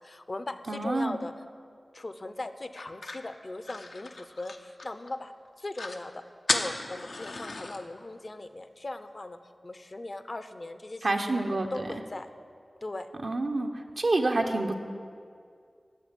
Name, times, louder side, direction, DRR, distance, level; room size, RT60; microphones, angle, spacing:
voice 1, 0.0-1.3 1.9-5.3 5.6-6.1 6.5-9.4 9.6-11.1 11.4-12.3 12.8-13.1, left 2 dB, 50° left, 10 dB, 0.7 m, -39 dB
voice 2, 0.7-1.2 11.0-11.7 13.2-13.7 14.0-14.7, right 2 dB, 65° right, 3 dB, 1.0 m, -27 dB
sound 1, 2.8-5.1 5.5-5.6 5.7-6.0 6.5-7.8, left 3 dB, 85° left, 0.8 m, -34 dB
10.5 x 6.6 x 8.8 m, 2.2 s
cardioid pair, 45°, 0 cm